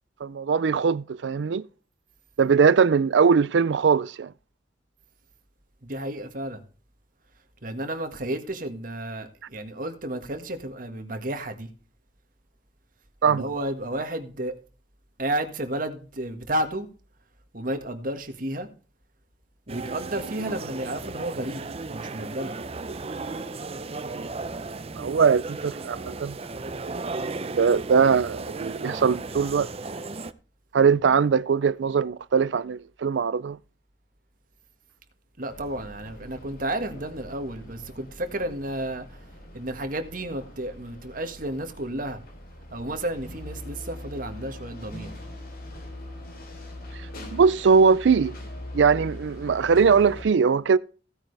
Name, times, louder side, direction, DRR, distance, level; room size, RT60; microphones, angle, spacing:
voice 1, 0.2-1.6 2.4-4.3 13.2-13.5 25.0-26.4 27.0-27.1 27.6-29.7 30.7-33.6 47.3-48.4 48.7-50.8, right 6 dB, 80° right, 0.4 m, -21 dB
voice 2, 5.8-6.6 7.6-11.7 13.3-14.5 15.2-16.9 17.5-18.7 19.7-21.6 21.9-22.5 35.4-39.1 39.5-42.2 42.7-45.1, right 1 dB, 50° right, 1.7 m, -32 dB
sound 1, 19.7-30.3, right 3 dB, 35° right, 0.6 m, -35 dB
sound 2, 35.5-50.2, left 1 dB, 55° left, 3.6 m, -42 dB
16.0 x 8.9 x 3.3 m
head